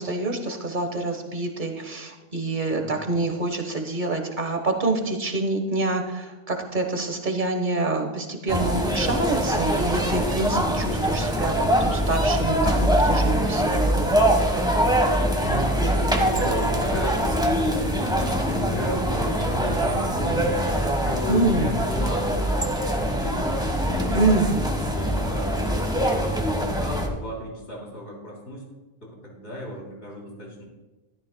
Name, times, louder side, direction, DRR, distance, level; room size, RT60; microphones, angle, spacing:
voice 1, 0.0-14.2 21.3-21.7 24.1-24.7, right 2 dB, 45° right, 4 dB, 1.4 m, -26 dB
sound 1, 8.5-27.1, equal, 5° right, 1.2 m, -23 dB
voice 2, 15.4-20.5 20.8-23.6 23.9-25.7 26.0-28.7 29.0-30.6, left 1 dB, 75° left, -3 dB, 3.6 m, -34 dB
14.0 x 12.5 x 2.3 m, 1.1 s
omnidirectional pair, 1.1 m